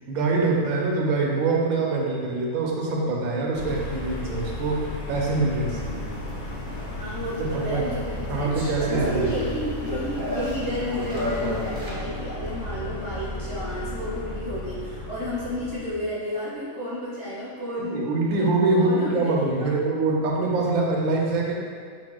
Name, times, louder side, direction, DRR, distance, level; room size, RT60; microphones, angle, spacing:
voice 1, 0.1-6.1 7.4-7.9 8.3-9.3 17.8-21.5, right 3 dB, 90° right, -1 dB, 1.1 m, -24 dB
sound 1, 3.5-15.9, left 1 dB, 85° left, 0.4 m, -34 dB
sound 2, 5.8-11.9, left 1 dB, 30° right, 0.4 m, -33 dB
voice 2, 6.9-8.5 8.8-18.5 18.8-19.7, equal, 25° left, -11 dB, 0.9 m, -32 dB
6.1 x 2.1 x 2.2 m, 2.1 s
omnidirectional pair, 1.5 m